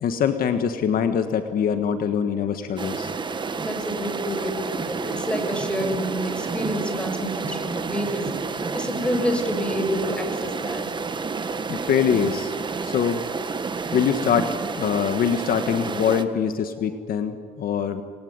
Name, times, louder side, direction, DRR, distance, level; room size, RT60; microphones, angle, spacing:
voice 1, 0.0-3.1 11.7-12.5 12.8-13.2 13.9-18.0, left 7 dB, 60° left, 8 dB, 1.6 m, -23 dB
sound 1, 2.8-16.2, right 4 dB, 30° right, 1.7 m, -30 dB
voice 2, 3.6-10.9, equal, 5° left, 5 dB, 5.9 m, -28 dB
28.0 x 21.5 x 9.7 m, 2.3 s
cardioid pair, 110°, 17 cm